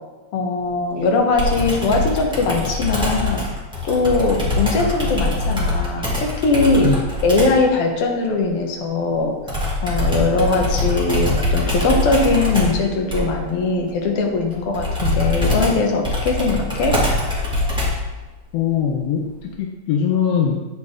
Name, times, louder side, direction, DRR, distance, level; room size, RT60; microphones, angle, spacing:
voice 1, 0.3-3.4 3.8-6.9 7.2-9.6 9.8-17.1, left 3 dB, 60° left, 1 dB, 1.7 m, -20 dB
Computer keyboard, 1.4-7.6 9.5-18.1, left 1 dB, ahead, 1.1 m, -23 dB
voice 2, 18.5-20.6, left 8 dB, 80° left, 1 dB, 1.5 m, -21 dB
8.5 x 6.3 x 3.7 m, 1.2 s
omnidirectional pair, 3.5 m